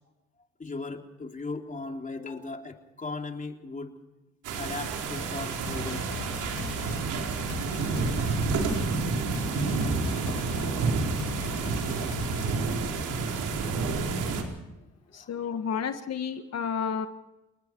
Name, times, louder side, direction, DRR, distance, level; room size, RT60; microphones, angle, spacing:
voice 1, 0.6-3.9 4.6-6.0 9.5-9.8 15.1-15.6, left 3 dB, 25° left, 3 dB, 3.6 m, -38 dB
sound 1, 4.4-14.4, right 4 dB, 90° right, 4.3 m, -29 dB
sound 2, 5.7-12.9, left 9 dB, 75° left, 2.2 m, -40 dB
voice 2, 15.1-17.1, left 7 dB, 55° left, 8 dB, 1.6 m, -31 dB
30.0 x 19.0 x 4.7 m, 1.0 s
cardioid pair, 90°, 30 cm